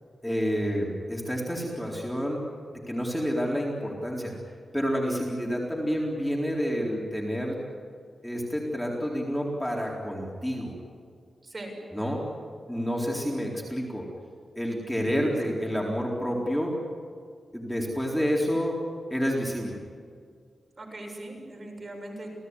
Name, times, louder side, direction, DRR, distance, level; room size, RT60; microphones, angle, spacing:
voice 1, 0.2-2.4 2.9-4.3 4.7-7.6 8.2-10.7 11.9-12.2 12.7-14.1 14.6-16.8 17.5-18.8 19.1-19.8, equal, 5° left, -2 dB, 4.2 m, -29 dB
voice 2, 11.4-11.7 15.5-15.6 20.8-22.3, right 1 dB, 35° right, 1 dB, 7.2 m, -40 dB
29.5 x 18.0 x 9.8 m, 2.1 s
wide cardioid pair, 110°, 0 cm